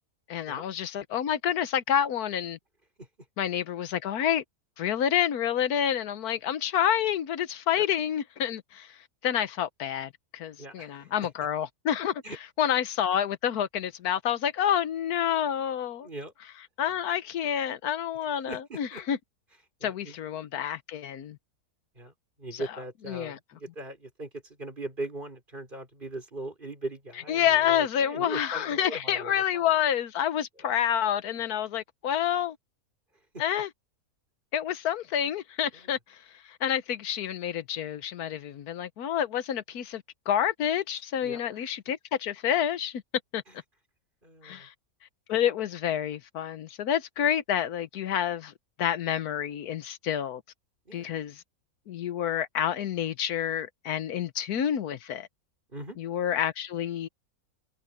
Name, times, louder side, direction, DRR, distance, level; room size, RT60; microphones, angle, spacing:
voice 1, 0.3-2.6 3.4-4.4 4.8-8.9 9.2-12.2 12.6-16.1 16.8-19.2 19.8-21.4 22.5-22.6 23.1-23.4 27.3-32.6 33.4-33.7 34.5-36.2 36.4-43.0 43.3-43.4 44.4-44.7 45.3-48.5 48.8-50.4 50.9-51.3 51.9-55.3 56.0-57.1, left 10 dB, 90° left, 1.4 m, -28 dB
voice 2, 10.6-11.1 12.2-12.4 16.0-16.3 18.5-19.0 19.8-20.2 21.9-29.7 30.6-30.7 33.3-33.4 35.7-35.9 41.2-41.7 43.5-43.6 44.2-44.7 50.8-51.2 55.7-56.0, right 2 dB, 35° right, 4.6 m, -40 dB
omnidirectional pair, 1.6 m